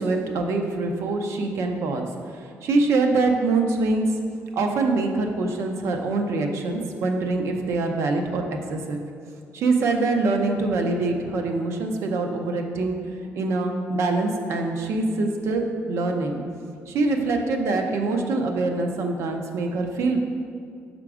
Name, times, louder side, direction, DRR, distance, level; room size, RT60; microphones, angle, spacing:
voice 1, 0.0-2.1 2.6-4.0 4.5-9.0 9.5-13.0 13.3-16.4 16.9-20.2, right 3 dB, 65° right, 4 dB, 0.6 m, -24 dB
5.7 x 3.7 x 4.8 m, 2.3 s
cardioid pair, 175°, 5 cm